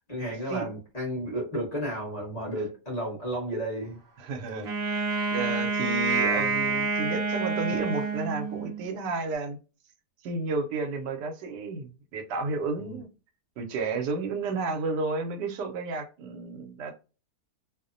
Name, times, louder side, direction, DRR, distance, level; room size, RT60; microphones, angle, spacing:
voice 1, 0.1-4.0 12.8-13.0, right 1 dB, 30° left, 0.8 m, -32 dB
voice 2, 4.2-9.6 10.2-13.1 13.6-17.0, right 3 dB, 85° right, 1.2 m, -32 dB
Wind instrument woodwind instrument, 4.6-8.8, right 4 dB, 65° right, 0.6 m, -28 dB
2.8 x 2.0 x 2.5 m
omnidirectional pair, 1.8 m